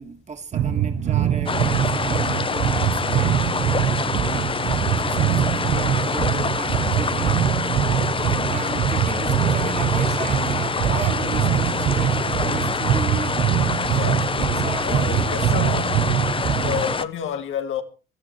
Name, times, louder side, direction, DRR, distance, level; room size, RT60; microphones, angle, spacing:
voice 1, 0.0-13.4 14.5-15.7 16.4-16.5, right 5 dB, 35° right, 2.7 m, -36 dB
sound 1, 0.5-16.9, right 10 dB, 65° right, 1.0 m, -23 dB
sound 2, 1.5-17.1, left 5 dB, 25° left, 0.8 m, -26 dB
voice 2, 13.9-14.5 14.8-15.9 16.6-17.8, left 8 dB, 80° left, 1.7 m, -29 dB
22.5 x 12.5 x 3.2 m
cardioid pair, 90°, 20 cm